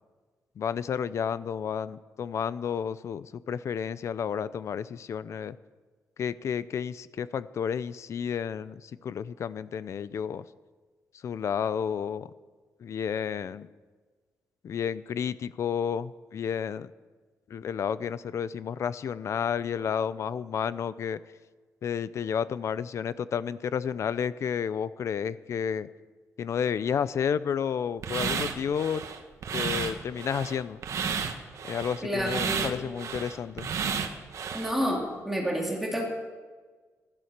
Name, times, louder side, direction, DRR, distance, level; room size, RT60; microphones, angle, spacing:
voice 1, 0.6-5.6 6.2-10.4 11.2-12.3 12.8-13.7 14.6-16.9 17.5-21.2 21.8-25.9 26.4-29.0 29.5-30.8 31.7-33.7, left 7 dB, 55° left, 16 dB, 0.6 m, -31 dB
sound 1, 28.0-34.7, right 6 dB, 60° right, 1.4 m, -32 dB
voice 2, 32.0-32.7 34.5-36.0, equal, 5° right, -2 dB, 3.2 m, -29 dB
15.5 x 12.5 x 6.6 m, 1.4 s
wide cardioid pair, 165°, 6 cm